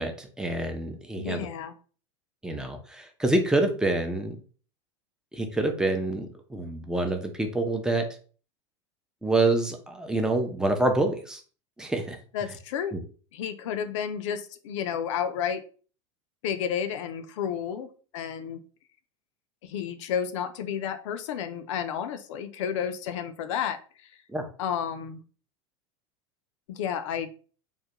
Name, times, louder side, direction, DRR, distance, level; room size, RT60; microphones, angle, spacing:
voice 1, 0.0-1.5 2.4-4.4 5.3-8.1 9.2-11.4 11.8-12.2 12.9-13.0 24.3-24.5, right 2 dB, 5° right, 4 dB, 0.5 m, -27 dB
voice 2, 1.2-1.7 12.3-13.0 13.3-15.6 16.4-17.9 18.1-18.6 19.6-23.8 24.6-25.2 26.7-27.3, left 8 dB, 75° left, 10 dB, 0.4 m, -31 dB
2.3 x 2.2 x 2.8 m, 0.40 s
hypercardioid pair, 95°, 16 cm